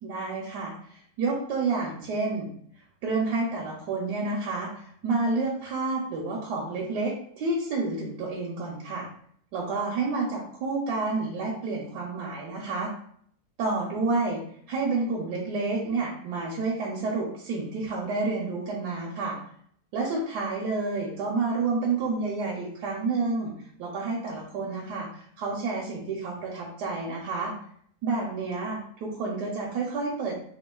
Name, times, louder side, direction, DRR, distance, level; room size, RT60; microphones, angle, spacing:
voice 1, 0.0-2.5 3.0-9.0 9.5-12.9 13.6-14.4 14.7-19.4 19.9-23.5 23.8-27.5 28.0-30.3, right 3 dB, 80° right, -3 dB, 1.2 m, -29 dB
4.4 x 2.3 x 2.3 m, 0.64 s
omnidirectional pair, 1.8 m